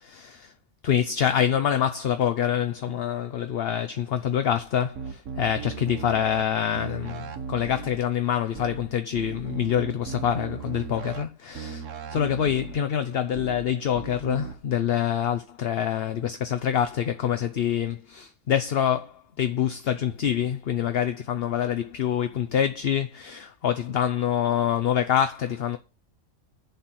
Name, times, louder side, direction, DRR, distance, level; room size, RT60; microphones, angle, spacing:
voice 1, 0.0-0.5 0.8-11.8 12.1-25.8, left 9 dB, 55° left, 0.9 m, -26 dB
sound 1, 5.0-6.4 6.7-8.0 8.5-8.8 9.1-11.2 11.5-12.8 13.3-13.6 13.9-14.5, right 5 dB, 85° right, 1.4 m, -36 dB
10.5 x 4.3 x 7.7 m
omnidirectional pair, 1.3 m